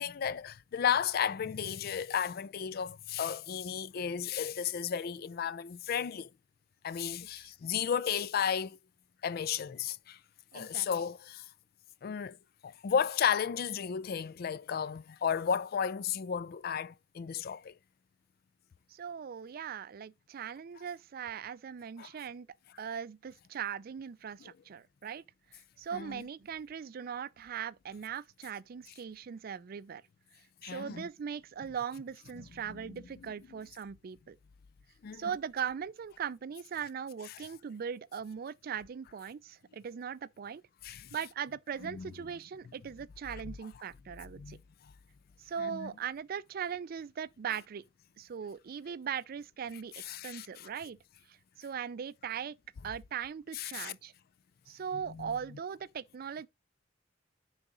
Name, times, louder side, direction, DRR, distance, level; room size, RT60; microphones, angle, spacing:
voice 1, 0.0-6.3 6.8-8.8 9.2-10.2 10.5-11.5 12.0-12.4 12.6-17.7 22.0-22.1 25.9-26.2 30.6-31.1 32.7-33.0 35.0-35.3 40.8-41.1 41.8-42.1 43.4-43.5 44.4-44.6 45.6-45.9 50.0-50.7 53.5-53.9 55.1-55.3, left 7 dB, 50° left, 0.4 m, -33 dB
voice 2, 10.5-10.9 18.9-22.5 22.8-25.2 25.5-30.0 30.6-34.4 35.1-40.6 41.1-44.6 45.4-47.8 48.2-51.0 51.3-52.5 52.8-54.1 54.7-56.5, right 7 dB, 50° right, 0.4 m, -39 dB
9.8 x 4.0 x 3.7 m
head